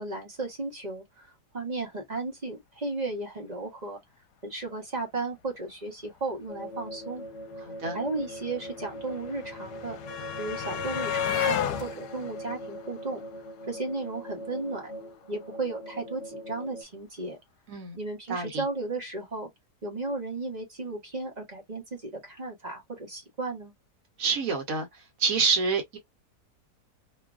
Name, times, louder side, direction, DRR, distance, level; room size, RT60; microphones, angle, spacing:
voice 1, 0.0-4.0 4.4-7.2 7.9-10.0 10.4-13.2 13.7-14.9 15.3-17.4 18.0-19.5 19.8-23.7, right 3 dB, 30° right, 1.0 m, -35 dB
sound 1, 6.5-16.8, equal, 40° left, 1.2 m, -41 dB
sound 2, 7.3-7.4 7.5-13.7 14.9-15.0 15.3-15.4, left 8 dB, 80° left, 1.2 m, -33 dB
voice 2, 7.6-8.0 17.7-18.0 18.3-18.6 24.2-24.9 25.2-26.0, right 4 dB, 60° right, 1.2 m, -27 dB
3.1 x 2.3 x 2.4 m
omnidirectional pair, 1.7 m